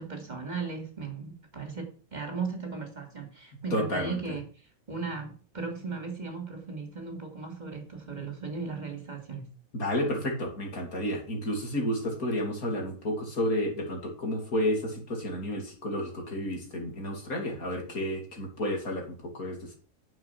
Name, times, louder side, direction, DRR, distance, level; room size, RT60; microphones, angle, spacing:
voice 1, 0.0-4.4 4.9-9.5, right 4 dB, 30° right, 3.0 m, -37 dB
voice 2, 3.7-4.2 9.7-19.7, left 1 dB, 85° left, 3.6 m, -31 dB
9.7 x 7.2 x 6.2 m
omnidirectional pair, 1.5 m